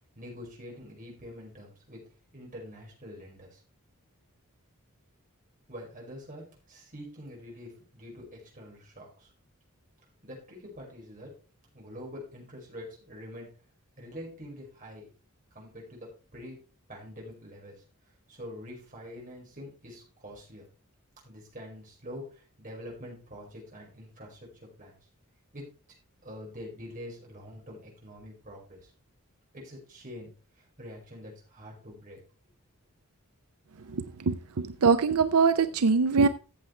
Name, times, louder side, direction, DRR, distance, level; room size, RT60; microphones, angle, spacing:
voice 1, 0.2-2.0 2.3-3.6 5.7-9.3 10.2-11.4 11.7-13.5 14.0-15.1 15.5-16.6 16.9-17.8 18.3-20.7 21.2-24.5 24.8-25.0 25.5-25.7 26.2-28.9 29.5-30.3 30.6-32.2, left 1 dB, 40° right, -2 dB, 5.2 m, -45 dB
voice 2, 33.9-36.3, right 5 dB, 90° right, 11 dB, 0.6 m, -23 dB
14.0 x 7.8 x 3.2 m, 0.34 s
head